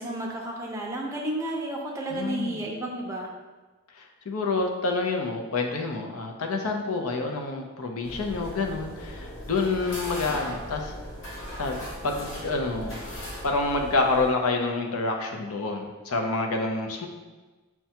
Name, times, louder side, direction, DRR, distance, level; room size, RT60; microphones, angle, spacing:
voice 1, 0.0-3.3, right 1 dB, 15° right, -2 dB, 0.5 m, -32 dB
voice 2, 2.1-2.6 4.0-10.9 11.5-13.0 13.4-17.1, left 3 dB, 75° left, 2 dB, 0.5 m, -28 dB
sound 1, 8.0-14.3, equal, 55° left, 1.0 m, -38 dB
5.8 x 2.2 x 2.8 m, 1.2 s
head